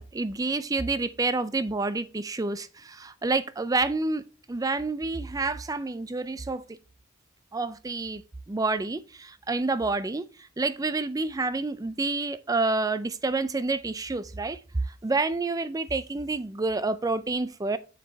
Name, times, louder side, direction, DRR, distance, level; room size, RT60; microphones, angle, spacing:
voice 1, 0.0-4.2 4.5-6.6 7.5-8.2 8.5-10.2 10.6-14.6 15.0-17.8, right 3 dB, 15° right, 0.4 m, -28 dB
7.5 x 6.8 x 3.3 m
head